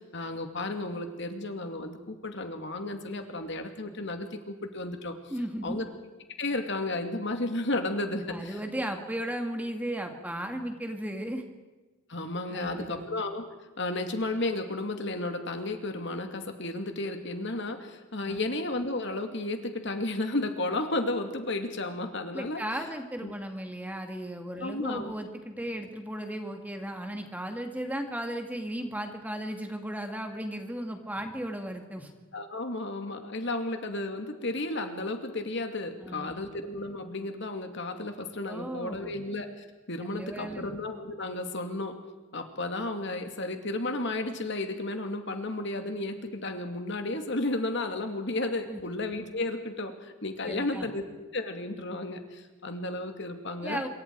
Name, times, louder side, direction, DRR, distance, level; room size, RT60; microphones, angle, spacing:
voice 1, 0.0-5.1 5.6-5.9 6.4-8.6 12.1-13.4 13.8-22.6 23.2-23.3 24.6-25.1 32.3-42.0 42.3-51.0 51.3-53.8, left 2 dB, 55° left, 6 dB, 2.5 m, -33 dB
voice 2, 5.3-5.8 8.3-11.4 12.5-13.1 18.2-18.5 22.3-32.1 36.0-36.5 38.5-39.2 40.1-40.7 48.7-48.8 50.5-50.9 53.6-53.9, right 1 dB, 5° right, 4 dB, 2.2 m, -35 dB
26.5 x 23.5 x 4.8 m, 1.2 s
head